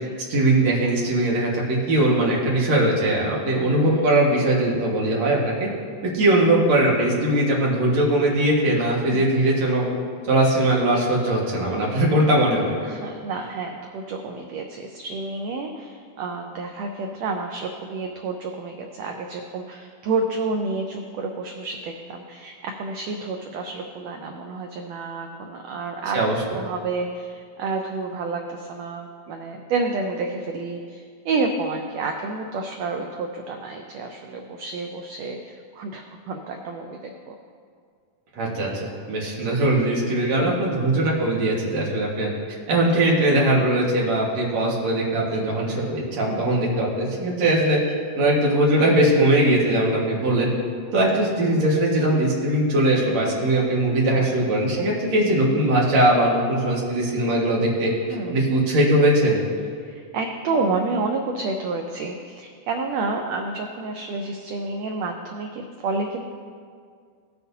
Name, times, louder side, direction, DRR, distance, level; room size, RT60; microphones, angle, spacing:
voice 1, 0.3-5.7 6.0-9.8 10.3-12.7 26.1-26.3 38.4-42.3 42.7-47.8 48.2-50.5 50.9-57.9 58.3-59.4, right 1 dB, 60° right, -4 dB, 2.8 m, -20 dB
voice 2, 9.0-9.3 12.8-26.2 26.5-37.3 39.3-39.4 40.4-40.8 46.3-46.5 54.1-54.3 58.1-58.3 59.8-66.3, right 3 dB, 85° right, 3 dB, 1.5 m, -30 dB
17.0 x 8.0 x 2.8 m, 2.1 s
omnidirectional pair, 3.7 m